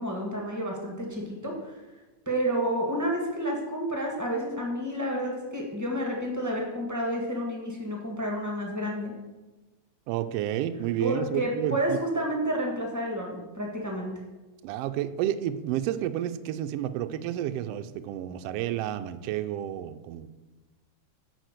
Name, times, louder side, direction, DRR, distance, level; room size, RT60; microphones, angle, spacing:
voice 1, 0.0-1.7 2.2-9.1 11.0-14.1, equal, 15° right, -1 dB, 0.6 m, -30 dB
voice 2, 10.1-12.0 14.6-20.3, right 11 dB, 85° right, 10 dB, 1.4 m, -30 dB
10.5 x 4.5 x 6.6 m, 1.1 s
omnidirectional pair, 3.3 m